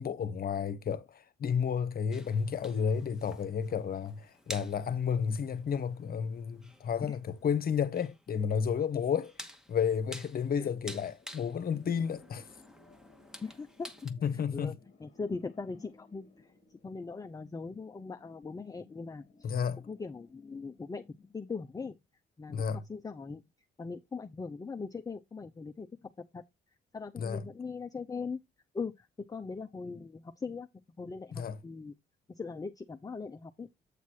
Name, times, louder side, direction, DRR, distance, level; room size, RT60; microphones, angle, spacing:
voice 1, 0.0-9.3 9.7-12.5 14.2-14.8 19.4-19.8 22.5-22.8 27.2-27.5 31.3-31.6, left 7 dB, 50° left, 0.9 m, -32 dB
sound 1, 2.1-14.1, equal, 5° right, 1.0 m, -51 dB
sound 2, 11.2-21.3, left 4 dB, 35° left, 1.3 m, -60 dB
voice 2, 13.4-13.9 14.5-14.7 15.0-16.5 16.8-19.2 19.9-21.0 21.3-22.0 22.4-22.6 22.9-23.4 23.8-26.4 26.9-28.4 28.7-30.7 31.0-31.9 32.3-33.7, left 4 dB, 20° left, 0.5 m, -40 dB
8.4 x 2.9 x 6.3 m
cardioid pair, 90°, 20 cm